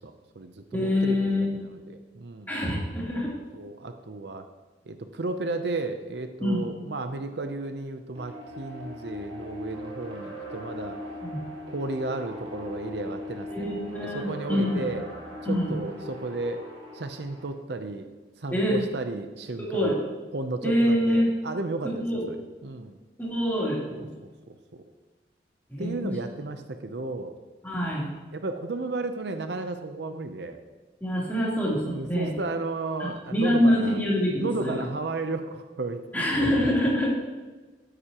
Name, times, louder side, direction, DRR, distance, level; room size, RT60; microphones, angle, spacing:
voice 1, 0.0-2.5 3.5-4.4 4.9-11.0 11.7-15.1 15.4-16.6 16.9-18.1 18.4-20.0 20.3-23.0 24.0-24.8 25.8-27.3 28.3-30.6 31.8-34.0 34.4-37.0, right 2 dB, 70° right, 7 dB, 0.7 m, -34 dB
voice 2, 0.7-1.6 2.5-3.3 6.4-6.7 11.2-11.4 13.5-14.8 15.4-15.7 18.5-18.8 19.6-20.0 20.6-21.3 21.8-22.2 23.2-24.1 25.7-26.1 27.6-28.1 31.0-32.3 33.0-34.8 36.1-37.1, left 1 dB, 10° left, -6 dB, 3.3 m, -25 dB
sound 1, 8.1-17.5, left 1 dB, 35° right, 3.5 m, -40 dB
12.5 x 10.0 x 3.0 m, 1.3 s
head